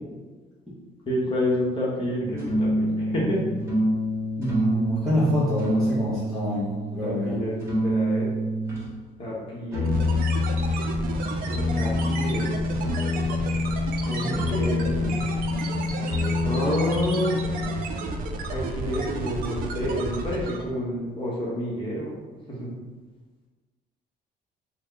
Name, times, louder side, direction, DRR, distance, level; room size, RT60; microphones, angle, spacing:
voice 1, 1.1-3.4 7.0-8.3 9.2-9.9 11.7-12.5 14.0-14.2 14.5-15.1 16.4-17.3 18.4-22.1 22.5-22.7, equal, 30° left, -5 dB, 1.1 m, -29 dB
sound 1, 2.2-8.9 9.7-17.7, left 1 dB, 15° right, 1.2 m, -27 dB
voice 2, 4.4-7.4 14.2-14.5, equal, ahead, -11 dB, 0.9 m, -26 dB
sound 2, 9.8-20.7, right 2 dB, 60° right, 0.4 m, -32 dB
3.0 x 2.2 x 3.8 m, 1.3 s
cardioid pair, 110°, 17 cm